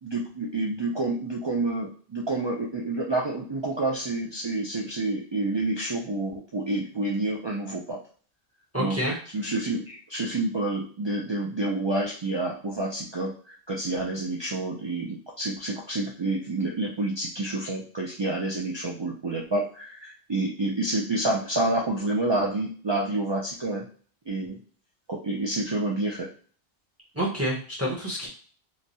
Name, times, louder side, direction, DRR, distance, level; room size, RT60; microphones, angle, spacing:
voice 1, 0.0-8.0 8.8-9.0 9.3-23.9 24.3-24.6 25.1-26.3, right 2 dB, 50° right, -3 dB, 0.3 m, -28 dB
voice 2, 8.7-9.1 27.1-28.3, equal, 15° right, -4 dB, 0.6 m, -28 dB
3.0 x 2.2 x 2.6 m, 0.43 s
omnidirectional pair, 1.0 m